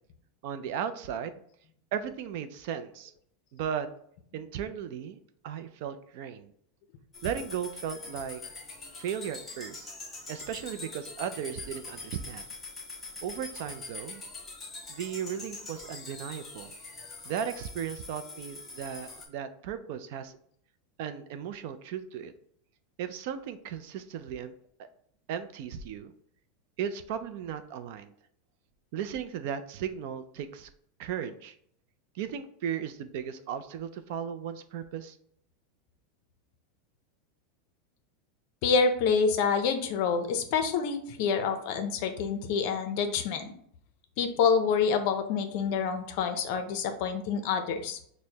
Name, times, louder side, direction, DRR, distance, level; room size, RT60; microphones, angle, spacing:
voice 1, 0.4-1.4 1.9-3.1 3.5-3.9 4.3-6.5 7.2-8.4 9.0-9.9 10.3-12.5 13.2-14.2 14.9-16.7 17.3-20.3 21.0-22.3 23.0-24.5 25.3-26.1 26.8-28.1 28.9-30.7 31.0-31.6 32.1-35.2, right 8 dB, 55° right, 10 dB, 0.4 m, -36 dB
sound 1, 7.1-19.3, left 3 dB, 10° left, 0.7 m, -44 dB
voice 2, 38.6-43.5 44.2-48.0, left 5 dB, 50° left, 7 dB, 0.5 m, -27 dB
6.2 x 2.1 x 2.8 m, 0.65 s
supercardioid pair, 165°, 0 cm